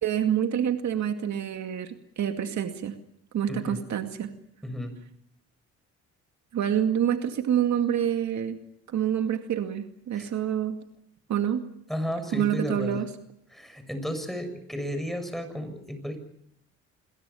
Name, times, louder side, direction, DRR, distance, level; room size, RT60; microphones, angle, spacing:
voice 1, 0.0-2.9 3.3-4.3 6.5-8.6 8.9-10.8 11.3-11.6 12.3-13.1, right 9 dB, 65° right, 6 dB, 2.3 m, -27 dB
voice 2, 3.5-3.8 4.6-4.9 10.1-10.3 11.9-13.0 13.5-16.2, equal, ahead, 8 dB, 7.0 m, -33 dB
28.0 x 22.0 x 7.2 m, 0.74 s
cardioid pair, 90°, 30 cm